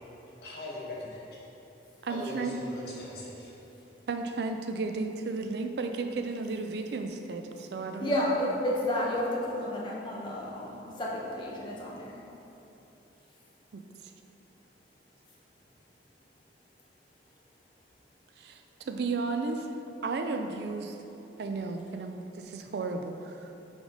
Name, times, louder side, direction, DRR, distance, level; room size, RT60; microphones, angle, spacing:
voice 1, 0.4-1.4 2.1-3.5, left 1 dB, 60° left, -6 dB, 1.3 m, -40 dB
voice 2, 2.0-2.6 4.1-8.2 10.1-10.2 13.7-13.8 18.4-19.7 20.0-21.0 21.4-23.5, right 3 dB, 60° right, 6 dB, 0.4 m, -34 dB
voice 3, 8.0-12.2, left 1 dB, 25° left, -4 dB, 0.8 m, -31 dB
5.0 x 4.0 x 4.8 m, 3.0 s
head